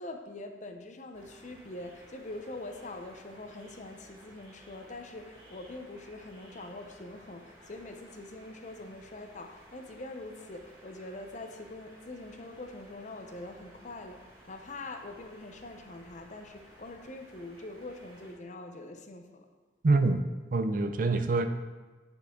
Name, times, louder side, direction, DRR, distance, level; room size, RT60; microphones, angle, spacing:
voice 1, 0.0-19.5, left 2 dB, 40° left, 5 dB, 0.7 m, -44 dB
sound 1, 1.1-18.3, equal, 30° right, 2.7 m, -56 dB
voice 2, 19.8-20.2 20.5-21.5, right 3 dB, 50° right, 9 dB, 0.5 m, -25 dB
9.3 x 6.8 x 3.8 m, 1.3 s
head